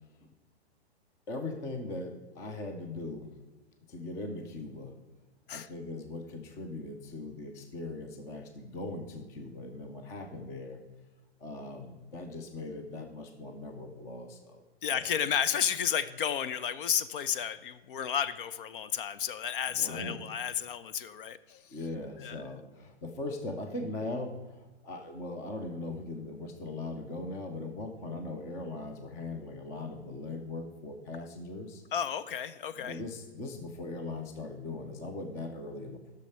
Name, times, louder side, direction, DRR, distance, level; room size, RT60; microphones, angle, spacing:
voice 1, 1.3-3.3 3.9-4.9 5.5-10.8 11.4-14.6 14.9-15.1 19.7-20.2 21.7-31.8 32.8-36.1, left 2 dB, 10° left, 5 dB, 0.4 m, -40 dB
voice 2, 14.8-21.6 22.2-22.4 31.9-33.0, left 8 dB, 50° left, 14 dB, 0.6 m, -32 dB
10.5 x 6.5 x 5.6 m, 1.2 s
hypercardioid pair, 140°, 33 cm